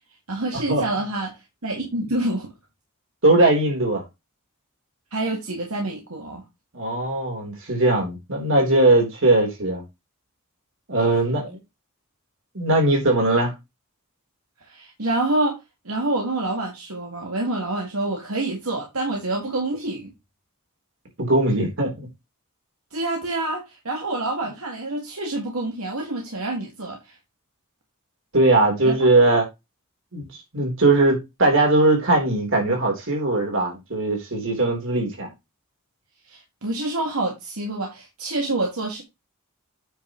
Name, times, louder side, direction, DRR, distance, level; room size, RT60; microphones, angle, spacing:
voice 1, 0.3-2.5 5.1-6.4 14.7-15.6 15.8-20.1 22.9-27.2 28.8-28.9 36.3-39.0, right 2 dB, 80° right, 2.2 m, -27 dB
voice 2, 3.2-4.0 6.7-9.8 10.9-11.6 12.5-13.5 21.2-22.1 28.3-29.5 30.1-30.3 30.5-35.3, right 2 dB, 60° right, 3.8 m, -20 dB
9.2 x 6.0 x 3.1 m
head